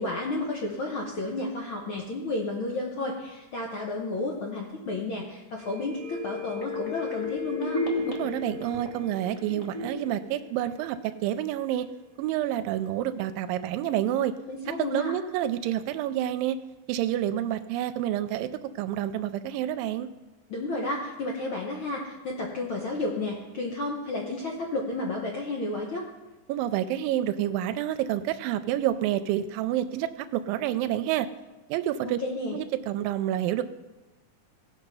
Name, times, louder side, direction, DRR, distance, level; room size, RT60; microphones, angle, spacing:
voice 1, 0.0-7.8 14.5-15.1 20.5-26.1 32.0-32.6, left 2 dB, 70° left, -1 dB, 1.2 m, -32 dB
sound 1, 5.6-11.2 11.6-11.7, left 3 dB, 15° left, 1.2 m, -34 dB
voice 2, 8.1-11.9 12.2-14.3 14.9-16.6 16.9-18.5 18.8-20.1 26.5-31.3 31.7-32.2 32.5-33.6, right 12 dB, 90° right, 10 dB, 2.3 m, -28 dB
17.0 x 6.1 x 5.4 m, 1.1 s
omnidirectional pair, 3.9 m